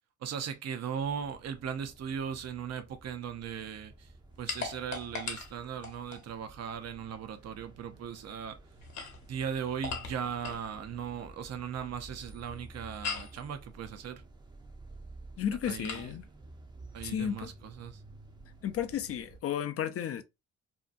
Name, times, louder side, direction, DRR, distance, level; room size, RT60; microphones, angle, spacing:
voice 1, 0.2-4.1 4.4-8.6 9.3-14.2 15.7-16.1 16.9-18.0, right 7 dB, 60° right, 0.6 m, -38 dB
sound 1, 1.0-19.4, right 2 dB, 15° right, 0.5 m, -52 dB
sound 2, 4.5-6.3 8.7-10.7 13.0-13.4 15.8-16.1, left 5 dB, 70° left, 0.9 m, -39 dB
voice 2, 15.4-16.3 17.0-17.5 18.6-20.2, left 9 dB, 50° left, 0.5 m, -33 dB
2.7 x 2.2 x 2.4 m
cardioid pair, 90°, 30 cm